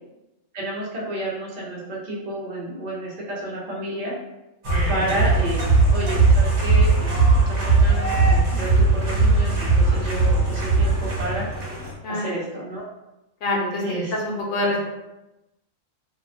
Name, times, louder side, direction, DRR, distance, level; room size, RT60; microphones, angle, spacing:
voice 1, 0.5-4.1 4.9-7.2 7.4-11.4 12.1-12.9 13.8-14.1, right 1 dB, 40° right, -5 dB, 0.7 m, -30 dB
sound 1, 4.6-11.9, right 3 dB, 65° right, 0.9 m, -19 dB
voice 2, 12.0-12.4 13.4-13.8 14.2-14.9, left 1 dB, 85° left, -2 dB, 1.1 m, -25 dB
2.7 x 2.2 x 2.6 m, 0.94 s
omnidirectional pair, 1.4 m